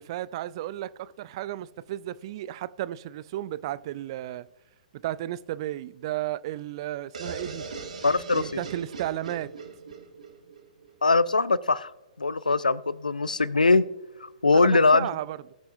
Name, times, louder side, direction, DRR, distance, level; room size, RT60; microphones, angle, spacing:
voice 1, 0.0-4.5 5.0-7.7 8.3-9.5 14.5-15.5, right 13 dB, 40° right, 0.4 m, -33 dB
sound 1, 7.1-10.9, right 4 dB, 65° right, 1.9 m, -39 dB
voice 2, 8.0-8.6 11.0-11.9 12.2-13.8 14.2-15.1, left 3 dB, 80° left, 0.5 m, -22 dB
19.5 x 6.8 x 2.6 m
figure-of-eight pair, 120°, 4 cm